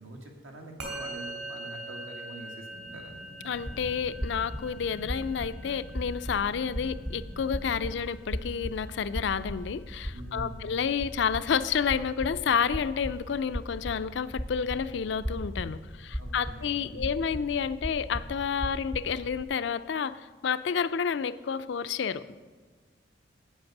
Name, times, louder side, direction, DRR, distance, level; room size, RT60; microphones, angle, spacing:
voice 1, 0.0-3.1 10.1-10.8 16.2-17.2, right 1 dB, 80° right, 1 dB, 1.8 m, -45 dB
Musical instrument, 0.8-10.3, right 2 dB, 60° right, 2.8 m, -44 dB
sound 1, 2.7-7.9, right 1 dB, 45° right, 1.6 m, -49 dB
voice 2, 3.4-22.4, left 7 dB, 65° left, 14 dB, 0.4 m, -30 dB
sound 2, 3.5-19.4, equal, 5° right, 0.5 m, -38 dB
8.8 x 7.8 x 6.0 m, 1.5 s
head